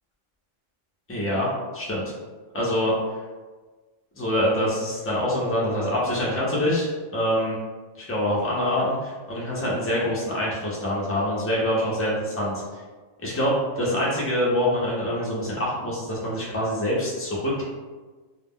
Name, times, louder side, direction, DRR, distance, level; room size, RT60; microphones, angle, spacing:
voice 1, 1.1-2.1 2.5-2.9 4.1-7.6 8.0-12.6 13.2-17.6, left 1 dB, 20° left, -6 dB, 0.4 m, -25 dB
2.3 x 2.0 x 3.5 m, 1.3 s
omnidirectional pair, 1.2 m